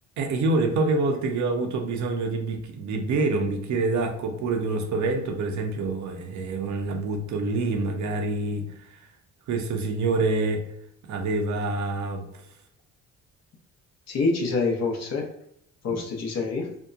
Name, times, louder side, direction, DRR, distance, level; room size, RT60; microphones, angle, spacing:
voice 1, 0.2-8.7 9.5-10.6 11.1-12.2 15.9-16.0, right 3 dB, 70° right, 4 dB, 0.6 m, -26 dB
voice 2, 14.1-15.3 15.8-16.8, left 3 dB, 60° left, 0 dB, 0.7 m, -26 dB
2.8 x 2.1 x 2.4 m, 0.74 s
cardioid pair, 90°, 30 cm